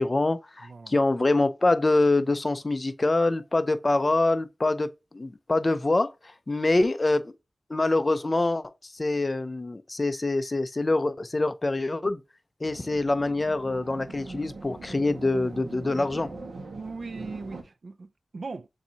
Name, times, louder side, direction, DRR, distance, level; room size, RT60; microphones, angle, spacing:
voice 1, 0.0-6.1 6.5-7.3 7.7-12.2 12.6-16.3, left 2 dB, 30° left, 0.5 m, -25 dB
voice 2, 0.6-0.9 16.7-18.7, right 4 dB, 55° right, 0.4 m, -39 dB
sound 1, 12.6-17.6, right 3 dB, 90° right, 1.1 m, -41 dB
7.0 x 2.7 x 2.8 m
wide cardioid pair, 110°, 0 cm